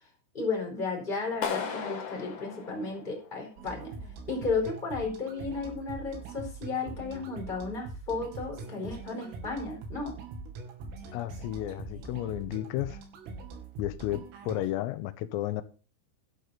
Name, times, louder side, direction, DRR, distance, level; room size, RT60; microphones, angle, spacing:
voice 1, 0.3-3.9 4.3-10.2, left 4 dB, 10° left, 4.0 m, -33 dB
Clapping, 1.4-3.5, left 6 dB, 55° left, 1.8 m, -36 dB
Dance Countdown, 3.6-14.7, right 3 dB, 75° right, 5.3 m, -43 dB
voice 2, 11.1-13.0 13.8-15.6, left 14 dB, 90° left, 3.7 m, -33 dB
12.5 x 12.0 x 4.2 m
omnidirectional pair, 5.9 m